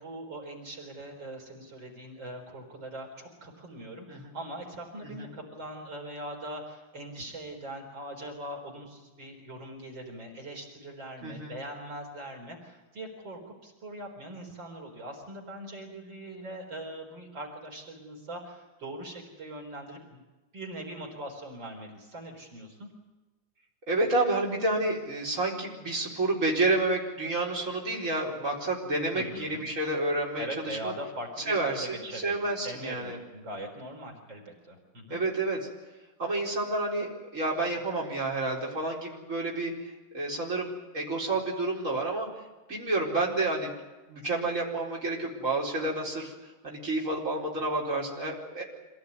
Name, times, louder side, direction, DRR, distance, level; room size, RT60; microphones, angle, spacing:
voice 1, 0.0-20.2 20.5-22.9 29.1-29.6 30.4-32.4 32.6-35.2, right 1 dB, 70° right, 1 dB, 4.8 m, -41 dB
voice 2, 11.2-11.5 23.9-30.9 31.5-33.2 35.1-35.6 36.2-39.7 40.1-40.7 40.9-42.3 42.7-43.7 44.1-46.3 46.6-48.6, right 2 dB, 40° right, -3 dB, 4.9 m, -29 dB
26.5 x 17.5 x 9.6 m, 1.2 s
omnidirectional pair, 2.2 m